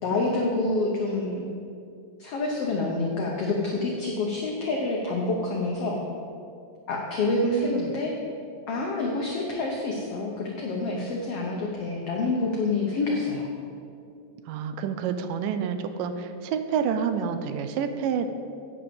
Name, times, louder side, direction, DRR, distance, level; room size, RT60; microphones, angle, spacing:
voice 1, 0.0-1.4 2.2-6.0 6.9-8.1 8.7-13.5, left 3 dB, 85° left, -1 dB, 1.3 m, -27 dB
voice 2, 7.2-7.9 14.5-18.3, right 7 dB, 80° right, 9 dB, 2.1 m, -28 dB
8.8 x 5.0 x 7.6 m, 2.5 s
omnidirectional pair, 3.9 m